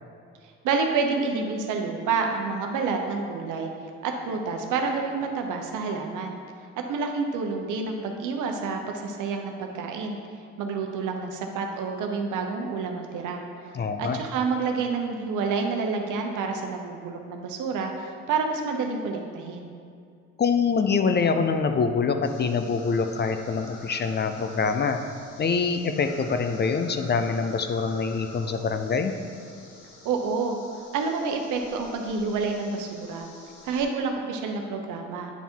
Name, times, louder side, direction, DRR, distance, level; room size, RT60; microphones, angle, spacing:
voice 1, 0.6-3.7 4.0-6.3 6.9-10.2 10.6-13.4 14.0-19.7 30.0-30.6 30.9-33.3 33.6-35.3, right 4 dB, 85° right, 3 dB, 0.8 m, -28 dB
voice 2, 13.7-14.2 20.4-25.0 25.4-29.1, left 5 dB, 35° left, 7 dB, 0.5 m, -25 dB
sound 1, 22.2-33.8, left 2 dB, 80° left, 1.3 m, -48 dB
9.2 x 3.5 x 4.4 m, 2.3 s
cardioid pair, 90°, 30 cm